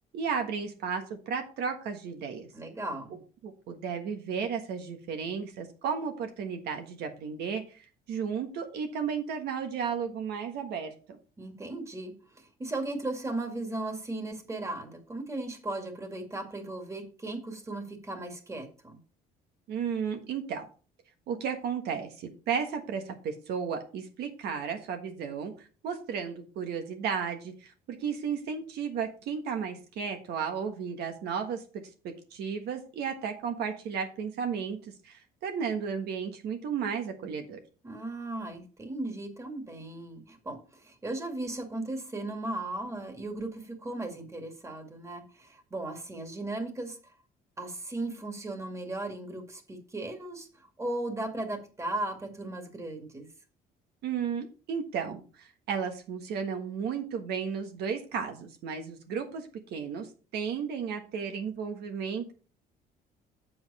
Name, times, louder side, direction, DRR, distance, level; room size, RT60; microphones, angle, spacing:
voice 1, 0.1-2.5 3.4-11.2 19.7-20.7 21.3-31.6 32.0-37.6 54.0-62.3, right 6 dB, 75° right, 5 dB, 1.4 m, -34 dB
voice 2, 2.5-3.1 11.4-19.0 37.8-47.1 47.6-53.3, right 2 dB, 15° right, 5 dB, 2.1 m, -37 dB
7.7 x 7.6 x 4.1 m, 0.36 s
cardioid pair, 110°, 17 cm